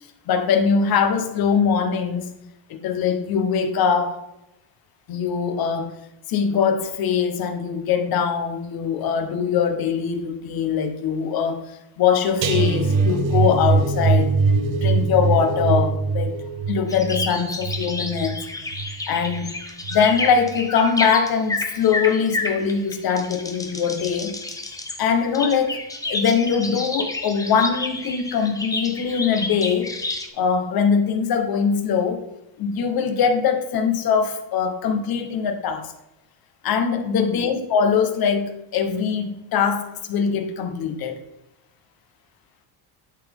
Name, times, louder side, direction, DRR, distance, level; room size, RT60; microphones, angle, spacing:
voice 1, 0.3-2.3 2.7-4.2 5.1-5.9 6.3-11.6 12.0-14.3 14.7-16.4 16.7-18.4 19.1-19.5 19.9-24.4 25.0-25.8 26.1-29.9 30.4-32.2 32.6-35.9 36.6-41.2, left 6 dB, 50° left, 7 dB, 1.0 m, -22 dB
sound 1, 12.4-19.5 19.8-20.1 20.5-20.6, right 4 dB, 80° right, 1.0 m, -22 dB
sound 2, 16.9-30.3, left 2 dB, 10° left, 0.5 m, -30 dB
11.0 x 4.1 x 3.5 m, 0.90 s
cardioid pair, 170°, 47 cm